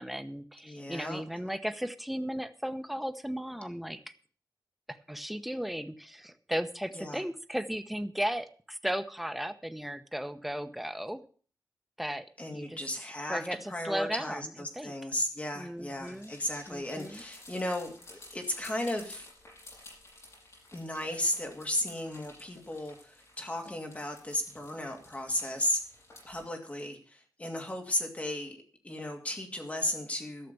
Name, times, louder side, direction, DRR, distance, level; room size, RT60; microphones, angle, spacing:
voice 1, 0.0-4.1 4.9-11.2 12.0-12.3 12.5-12.8 13.3-14.4 14.7-14.9 15.5-16.3 16.7-17.2, equal, ahead, 8 dB, 0.9 m, -35 dB
voice 2, 0.6-1.2 6.9-7.2 12.4-13.4 13.7-19.3 20.7-25.8 26.2-28.6 28.8-30.5, left 1 dB, 20° left, 4 dB, 2.5 m, -35 dB
sound 1, 15.8-26.4, left 2 dB, 45° left, 6.9 m, -54 dB
13.0 x 6.6 x 8.2 m, 0.42 s
wide cardioid pair, 170°, 7 cm